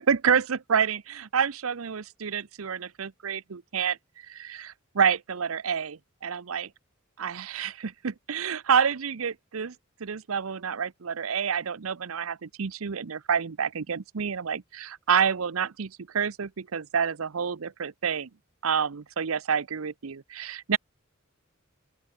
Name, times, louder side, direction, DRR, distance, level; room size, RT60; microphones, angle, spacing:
voice 1, 0.0-6.7 7.2-9.7 10.0-18.3 18.6-20.8, right 7 dB, 85° right, 0.7 m, -28 dB
open air
head